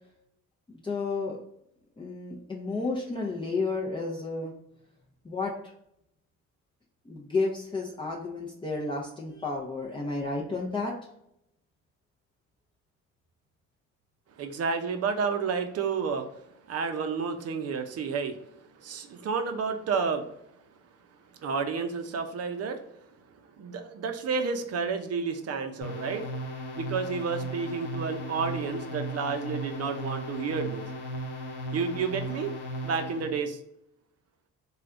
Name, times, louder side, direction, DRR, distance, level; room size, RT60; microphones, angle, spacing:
voice 1, 0.7-1.4 2.0-4.5 5.2-5.5 7.1-10.9, left 3 dB, 15° left, -4 dB, 0.6 m, -31 dB
voice 2, 14.4-16.3 16.7-18.4 18.8-20.3 21.4-22.8 23.6-26.3 26.8-30.8 31.7-32.5 32.8-33.6, right 5 dB, 55° right, 7 dB, 0.6 m, -30 dB
sound 1, 25.8-33.4, equal, 80° left, 0.8 m, -36 dB
3.3 x 2.3 x 2.5 m, 0.77 s
cardioid pair, 90°, 30 cm